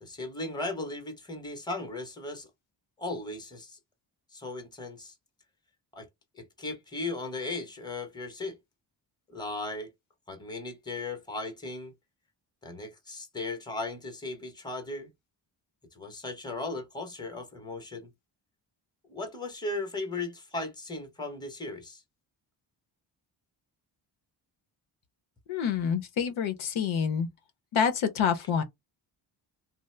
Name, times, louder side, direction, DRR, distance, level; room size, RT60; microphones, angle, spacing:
voice 1, 0.0-2.5 3.0-3.8 4.3-5.1 5.9-6.1 6.3-8.6 9.3-9.9 10.3-11.9 12.6-15.1 15.9-18.1 19.1-22.0, left 2 dB, 10° left, 0.7 m, -37 dB
voice 2, 25.5-27.3 27.7-28.6, left 7 dB, 85° left, 0.8 m, -27 dB
2.7 x 2.0 x 3.1 m
cardioid pair, 105°, 47 cm